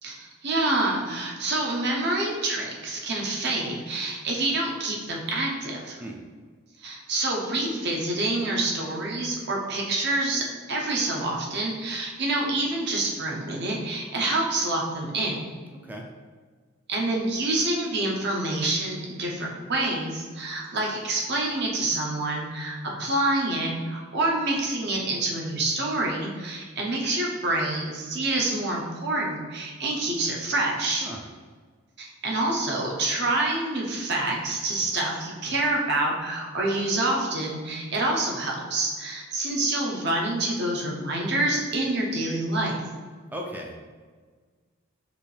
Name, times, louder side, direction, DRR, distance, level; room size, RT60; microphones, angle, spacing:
voice 1, 0.0-6.0 6.8-15.5 16.9-31.1 32.0-42.8, right 2 dB, 55° right, -1 dB, 0.8 m, -27 dB
voice 2, 43.3-43.8, equal, 10° right, 0 dB, 0.4 m, -36 dB
5.1 x 2.6 x 3.3 m, 1.5 s
head